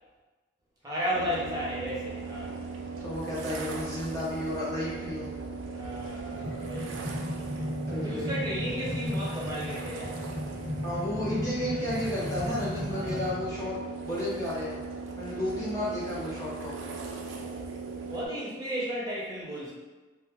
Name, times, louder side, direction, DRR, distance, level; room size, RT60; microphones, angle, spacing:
voice 1, 0.8-2.5 5.7-6.9 7.9-10.2 12.9-13.9 15.6-15.9 18.1-19.7, equal, 20° right, -7 dB, 0.7 m, -34 dB
sound 1, 1.1-18.3, right 4 dB, 90° right, 0.4 m, -38 dB
voice 2, 3.0-5.3 7.9-8.3 10.8-13.8 14.0-14.8 15.2-16.7, left 1 dB, 15° left, -8 dB, 0.5 m, -32 dB
sound 2, 5.9-13.4, left 1 dB, 45° left, 1.0 m, -36 dB
2.5 x 2.2 x 3.4 m, 1.2 s
head